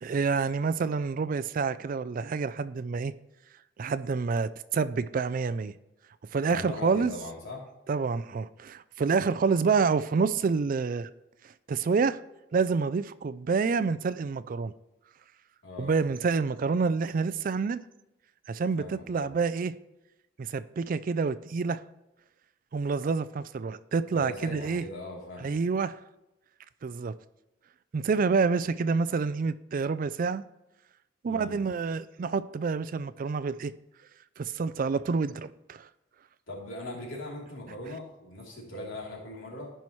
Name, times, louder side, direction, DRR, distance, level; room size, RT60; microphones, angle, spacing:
voice 1, 0.0-3.1 3.8-5.7 6.3-7.1 7.9-11.1 11.7-12.2 12.5-14.7 15.8-17.8 18.5-19.7 20.4-21.8 22.7-24.8 25.4-26.0 26.8-27.1 27.9-30.4 31.2-33.7 34.4-35.9, right 5 dB, 40° right, 0.3 m, -28 dB
voice 2, 6.4-7.7 15.6-16.0 18.8-19.3 24.1-25.6 31.2-31.6 36.5-39.7, left 1 dB, 70° left, 3.2 m, -40 dB
15.0 x 5.6 x 3.1 m
head